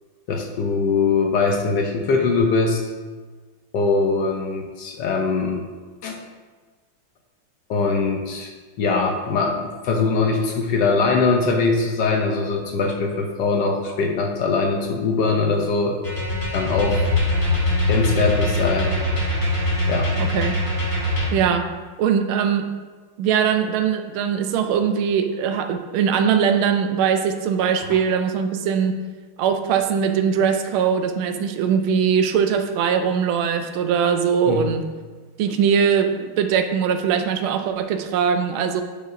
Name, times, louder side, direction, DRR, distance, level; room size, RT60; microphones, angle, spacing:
voice 1, 0.3-2.8 3.7-5.7 6.0-6.2 7.7-16.0 16.5-17.1 17.9-19.0 19.9-20.1 27.9-28.0 34.5-34.7, left 4 dB, 70° left, 2 dB, 1.1 m, -22 dB
sound 1, 16.0-21.3, left 1 dB, 25° left, 1.8 m, -22 dB
voice 2, 20.2-20.6 21.3-21.7 22.0-22.7 23.2-29.0 29.4-34.9 35.4-38.8, right 7 dB, 85° right, 7 dB, 1.4 m, -21 dB
8.8 x 5.0 x 2.6 m, 1.4 s
omnidirectional pair, 2.3 m